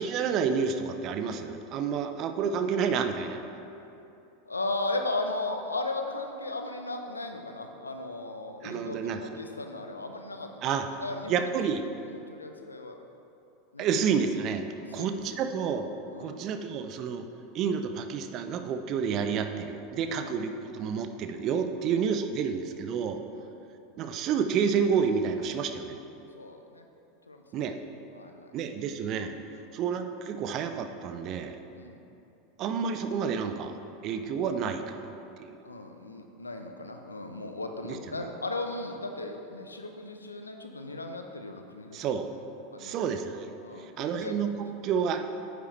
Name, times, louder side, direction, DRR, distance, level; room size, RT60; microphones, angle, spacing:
voice 1, 0.0-3.4 8.6-9.2 10.6-10.9 11.3-11.9 13.8-14.7 14.9-15.9 16.2-17.3 17.5-23.2 24.0-26.0 27.5-27.8 28.5-29.3 29.7-31.6 32.6-33.8 34.0-35.1 35.4-35.5 37.8-38.0 41.9-42.3 42.8-43.5 43.8-45.2, right 6 dB, 40° right, 8 dB, 0.6 m, -29 dB
voice 2, 4.5-10.6 11.0-11.6 12.0-13.0 13.7-13.9 14.9-15.1 16.1-16.4 20.1-20.3 21.7-21.9 23.3-23.5 26.4-26.9 27.3-27.6 28.1-28.5 29.5-29.7 31.7-32.0 35.6-42.2 42.7-43.0 43.6-44.4 44.8-45.0, left 2 dB, 85° left, 5 dB, 0.7 m, -36 dB
9.7 x 8.0 x 3.2 m, 2.8 s
figure-of-eight pair, 85°, 0 cm